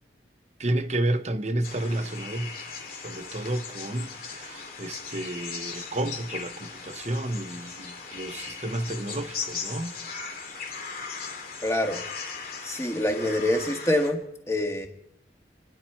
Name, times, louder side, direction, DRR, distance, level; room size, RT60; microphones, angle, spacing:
voice 1, 0.6-2.5 3.0-9.9, right 1 dB, 40° right, 0.9 m, -31 dB
sound 1, 1.6-14.1, left 5 dB, 55° left, 2.3 m, -38 dB
voice 2, 11.6-12.0 12.6-14.2 14.5-14.9, left 1 dB, 15° left, 1.7 m, -25 dB
28.0 x 10.5 x 4.5 m
head